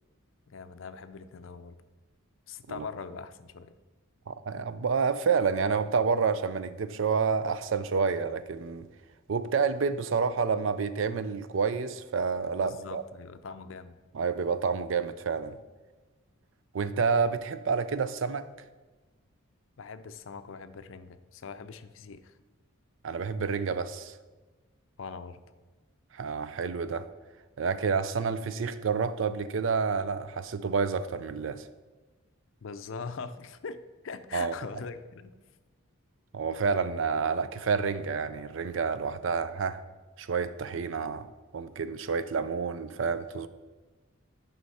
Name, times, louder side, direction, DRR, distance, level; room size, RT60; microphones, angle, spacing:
voice 1, 0.5-1.8 2.5-3.7 12.6-14.0 19.8-22.4 25.0-25.4 32.6-35.3, left 5 dB, 65° left, 11 dB, 0.5 m, -42 dB
voice 2, 4.3-8.9 9.3-13.0 14.1-15.6 16.7-18.5 23.0-24.1 26.1-27.1 27.6-31.6 34.3-34.5 36.3-39.8 40.2-41.3 41.5-43.5, right 5 dB, 65° right, 13 dB, 0.4 m, -29 dB
9.6 x 5.6 x 4.2 m, 1.3 s
head